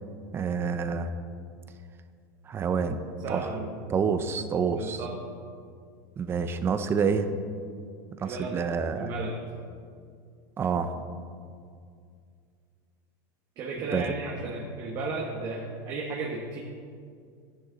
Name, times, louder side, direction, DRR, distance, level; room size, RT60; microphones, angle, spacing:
voice 1, 0.3-1.1 2.5-3.5 3.9-5.0 6.2-7.3 8.2-9.1 10.6-11.0 13.9-14.1, right 6 dB, 25° right, 9 dB, 0.6 m, -28 dB
voice 2, 3.2-3.7 4.7-5.2 8.2-8.6 8.9-9.4 13.6-16.6, right 3 dB, 40° right, -2 dB, 1.5 m, -34 dB
13.5 x 10.5 x 4.0 m, 2.3 s
supercardioid pair, 140°, 10 cm